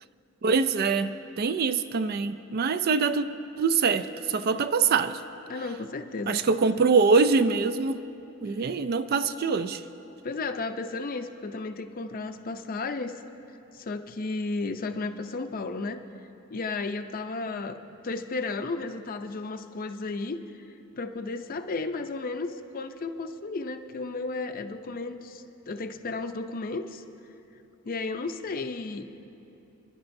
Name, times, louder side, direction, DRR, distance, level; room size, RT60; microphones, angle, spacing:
voice 1, 0.4-1.1 1.4-3.2 3.6-5.2 6.3-8.0 8.4-9.8, right 4 dB, 50° right, 11 dB, 0.4 m, -24 dB
voice 2, 5.5-6.4 10.2-13.1 13.7-16.0 16.5-17.8 18.0-20.4 21.0-22.5 22.7-27.0 27.9-29.0, left 3 dB, 45° left, 8 dB, 0.5 m, -33 dB
27.5 x 10.5 x 2.6 m, 2.9 s
head